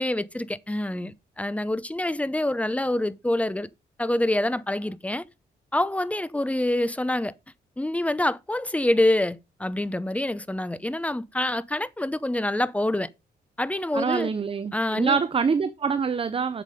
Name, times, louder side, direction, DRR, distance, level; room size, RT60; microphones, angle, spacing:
voice 1, 0.0-3.7 4.0-5.2 5.7-7.3 7.8-13.1 13.6-14.3 14.7-15.2, left 1 dB, 10° left, 0.7 m, -26 dB
voice 2, 13.9-16.6, right 6 dB, 35° right, 0.6 m, -25 dB
7.5 x 7.3 x 5.0 m
cardioid pair, 100°, 17 cm